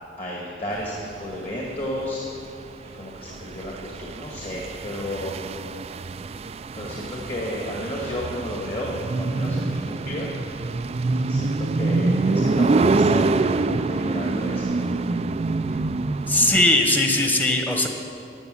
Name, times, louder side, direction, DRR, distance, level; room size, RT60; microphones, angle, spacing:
voice 1, 0.2-2.2 2.9-5.4 6.7-10.3 11.3-14.9, left 1 dB, 30° left, -3 dB, 1.9 m, -32 dB
sound 1, 0.8-16.6, right 3 dB, 35° right, 0.3 m, -25 dB
voice 2, 16.3-17.9, left 1 dB, 10° left, 3 dB, 1.2 m, -19 dB
14.0 x 8.1 x 9.6 m, 2.6 s
head